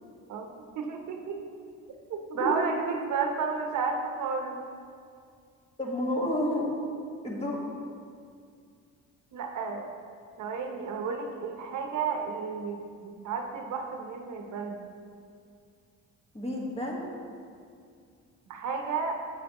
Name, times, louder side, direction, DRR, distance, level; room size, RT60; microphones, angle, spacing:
voice 1, 0.7-1.4 2.1-4.6 9.3-9.9 10.4-14.8 18.5-19.1, right 5 dB, 75° right, 3 dB, 0.9 m, -32 dB
voice 2, 5.8-6.7 7.2-7.6 16.3-17.1, left 1 dB, 20° left, -3 dB, 1.5 m, -30 dB
7.7 x 7.7 x 2.9 m, 2.3 s
cardioid pair, 90°, 30 cm